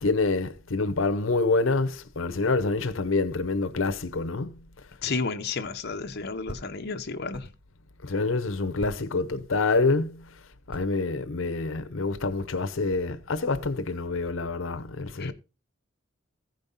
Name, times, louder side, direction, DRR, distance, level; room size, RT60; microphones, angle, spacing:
voice 1, 0.0-4.5 8.0-10.2 10.7-15.3, left 3 dB, 90° left, 0.8 m, -27 dB
voice 2, 5.0-7.5 15.2-15.3, left 4 dB, 55° left, 1.0 m, -32 dB
sound 1, 6.4-7.6 8.0-8.1 8.8-9.6 10.6-13.1, right 1 dB, 30° right, 0.8 m, -45 dB
15.5 x 5.3 x 4.0 m
head